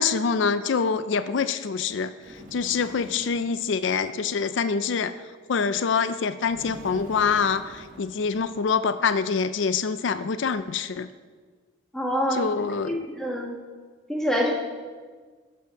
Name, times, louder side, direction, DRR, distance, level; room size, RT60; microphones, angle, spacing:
voice 1, 0.0-2.1 2.5-5.1 5.5-11.1 12.3-13.0, left 5 dB, 70° left, 12 dB, 0.4 m, -25 dB
Bird, 2.2-3.6 6.4-9.0, equal, 40° right, 2.1 m, -45 dB
voice 2, 11.9-12.4 12.9-13.5 14.1-14.5, equal, 5° left, -2 dB, 1.7 m, -26 dB
13.0 x 6.2 x 5.8 m, 1.5 s
head